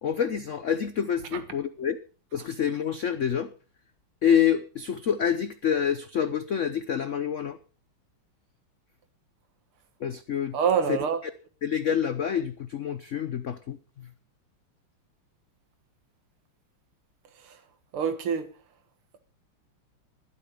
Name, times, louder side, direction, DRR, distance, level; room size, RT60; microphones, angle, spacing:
voice 1, 0.0-2.0 2.3-3.5 4.2-7.6 10.0-10.6 10.9-11.3 11.6-13.8, left 8 dB, 90° left, 0.6 m, -27 dB
voice 2, 10.5-11.2 17.9-18.5, right 7 dB, 80° right, 2.4 m, -25 dB
12.0 x 12.0 x 5.5 m
omnidirectional pair, 2.4 m